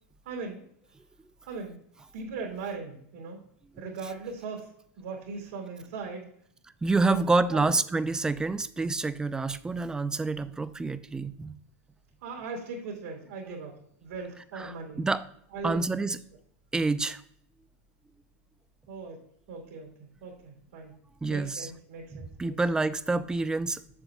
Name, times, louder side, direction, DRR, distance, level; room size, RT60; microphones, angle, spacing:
voice 1, 0.2-0.6 1.5-1.8 2.1-3.4 3.8-6.3 7.1-7.2 7.5-7.7 12.2-15.0 15.5-16.0 18.9-19.2 19.5-21.0 21.3-22.5, right 4 dB, 80° right, 0 dB, 2.6 m, -39 dB
voice 2, 6.8-11.5 14.5-15.2 15.6-16.2 16.7-17.2 21.2-21.7 22.1-23.8, right 3 dB, 10° right, 14 dB, 0.4 m, -28 dB
7.8 x 6.7 x 2.3 m, 0.68 s
supercardioid pair, 125°, 7 cm